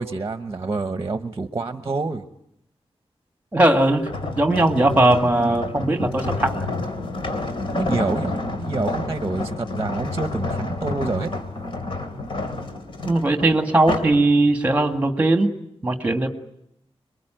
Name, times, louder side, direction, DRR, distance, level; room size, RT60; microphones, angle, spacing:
voice 1, 0.0-2.2 7.7-11.3, right 3 dB, 30° right, 9 dB, 1.0 m, -27 dB
voice 2, 3.5-4.1 4.4-6.7 13.1-15.5 15.8-16.3, right 2 dB, 15° right, 6 dB, 2.1 m, -19 dB
sound 1, 4.0-14.2 14.7-14.9, left 2 dB, 55° left, 3.0 m, -29 dB
27.0 x 22.5 x 9.1 m, 0.79 s
wide cardioid pair, 180°, 11 cm